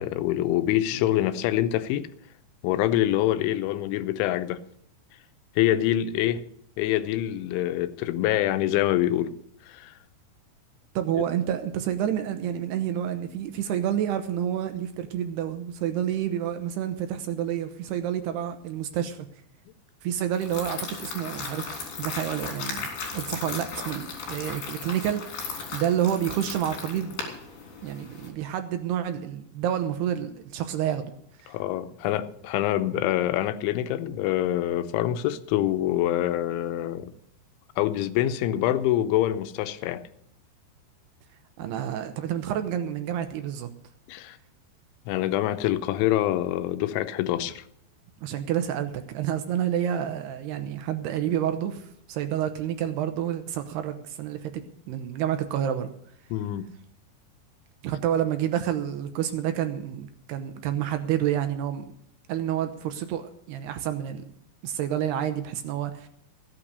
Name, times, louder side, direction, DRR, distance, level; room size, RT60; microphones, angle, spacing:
voice 1, 0.0-2.1 2.6-4.6 5.6-6.4 6.8-9.3 9.6-9.9 31.5-37.1 37.8-40.0 44.1-44.4 45.1-47.6 56.3-56.7, left 13 dB, 90° left, 3.3 m, -25 dB
voice 2, 11.0-19.3 20.0-22.9 23.1-27.2 27.8-31.1 31.4-31.6 41.6-43.7 48.2-54.5 54.9-55.9 57.8-61.8 62.3-64.2 64.6-66.1, right 10 dB, 75° right, 2.6 m, -29 dB
sound 1, 20.3-28.3, left 5 dB, 60° left, 5.1 m, -36 dB
15.5 x 8.8 x 6.7 m
omnidirectional pair, 5.3 m